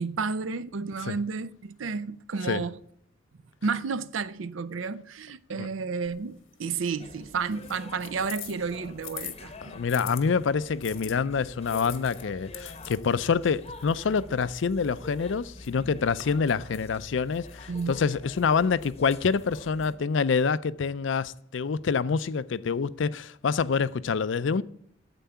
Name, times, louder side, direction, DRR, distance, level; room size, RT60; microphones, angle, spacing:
voice 1, 0.0-2.8 3.6-9.8 17.7-18.0, right 5 dB, 85° right, 0.6 m, -31 dB
sound 1, 6.0-10.2 10.8-16.2, left 12 dB, 85° left, 1.2 m, -45 dB
sound 2, 7.0-20.0, left 2 dB, 30° left, 0.8 m, -46 dB
voice 2, 9.6-24.6, left 5 dB, 70° left, 0.4 m, -26 dB
9.1 x 7.6 x 7.0 m
head